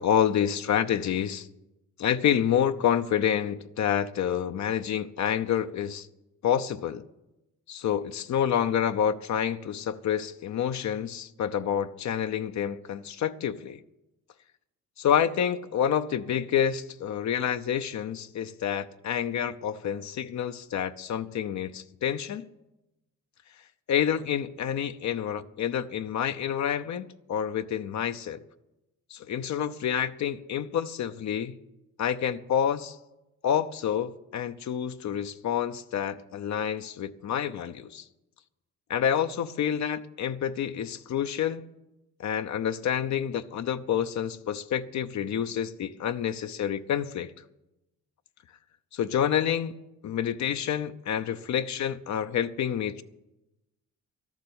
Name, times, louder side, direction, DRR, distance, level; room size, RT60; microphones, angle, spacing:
voice 1, 0.0-1.5 2.0-6.1 6.4-7.0 7.7-13.8 15.0-22.4 23.9-28.4 29.1-31.6 32.0-33.0 33.4-38.0 38.9-41.6 42.2-47.3 48.9-49.7 50.0-53.0, left 9 dB, 55° left, 0.7 m, -28 dB
13.0 x 7.3 x 9.6 m
cardioid pair, 80°, 34 cm